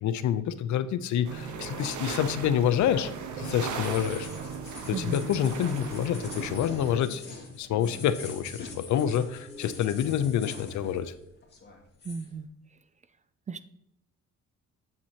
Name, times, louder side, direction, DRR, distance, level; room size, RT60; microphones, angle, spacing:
voice 1, 0.0-4.3 4.9-7.2 7.5-11.1, left 10 dB, 70° left, 14 dB, 0.6 m, -27 dB
sound 1, 1.2-7.0, right 6 dB, 75° right, 1.0 m, -37 dB
sound 2, 2.1-11.2 11.4-12.3, left 4 dB, 35° left, 2.1 m, -45 dB
sound 3, 7.7-9.9, left 1 dB, ahead, 1.0 m, -50 dB
voice 2, 12.0-12.5 13.5-13.7, right 5 dB, 25° right, 13 dB, 0.3 m, -35 dB
7.8 x 7.2 x 2.8 m, 0.84 s
cardioid pair, 90°, 30 cm